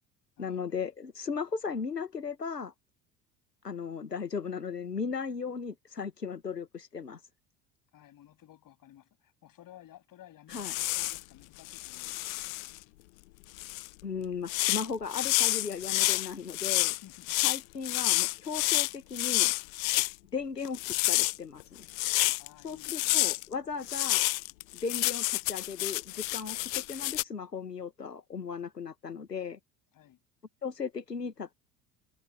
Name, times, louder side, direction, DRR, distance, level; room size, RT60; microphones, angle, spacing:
voice 1, 0.4-2.7 3.6-7.2 10.5-10.7 14.0-16.9 17.4-19.5 20.3-21.9 22.6-24.2 24.7-29.6 30.6-31.5, left 5 dB, 85° left, 1.6 m, -36 dB
voice 2, 7.9-12.5 16.9-17.6 22.4-23.3 29.9-30.2, left 12 dB, 45° left, 7.8 m, -55 dB
sound 1, 10.5-11.2 11.7-12.8 13.6-13.9 14.5-20.1 20.7-22.5 22.8-23.4 23.9-27.2, left 23 dB, 60° left, 0.8 m, -29 dB
figure-of-eight pair, 65°, 47 cm